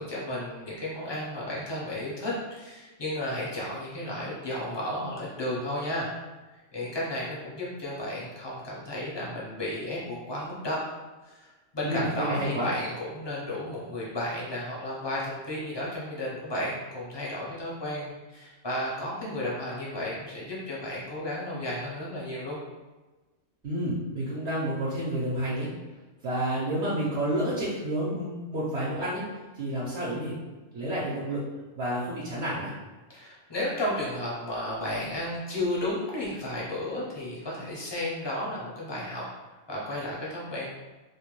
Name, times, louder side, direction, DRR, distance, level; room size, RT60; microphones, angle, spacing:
voice 1, 0.0-6.1 6.7-10.8 11.2-22.6 33.1-39.2 39.7-40.7, left 1 dB, 40° left, -6 dB, 0.3 m, -33 dB
voice 2, 11.8-12.7 23.6-25.7 26.2-29.2 29.6-30.3 30.7-31.4 31.7-32.7, right 1 dB, 65° right, -7 dB, 0.9 m, -29 dB
2.5 x 2.1 x 3.0 m, 1.2 s
omnidirectional pair, 1.3 m